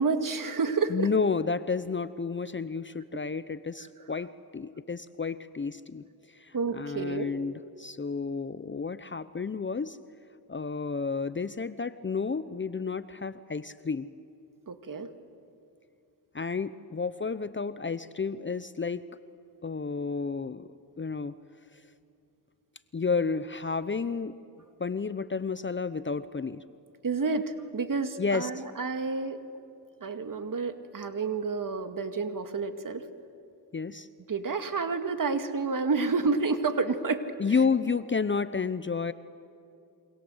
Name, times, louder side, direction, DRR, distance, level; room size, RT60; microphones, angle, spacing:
voice 1, 0.0-1.1 6.5-7.3 14.7-15.1 27.0-29.4 30.0-33.0 34.3-37.3, right 4 dB, 45° right, 8 dB, 2.3 m, -29 dB
voice 2, 0.9-6.0 6.3-10.0 10.5-14.1 16.3-19.0 19.6-20.7 21.0-21.4 21.7-21.8 22.9-24.4 24.8-26.6 28.2-28.5 33.7-34.1 37.4-39.1, left 5 dB, 25° left, 14 dB, 0.8 m, -31 dB
28.0 x 25.0 x 8.1 m, 2.6 s
cardioid pair, 65°, 46 cm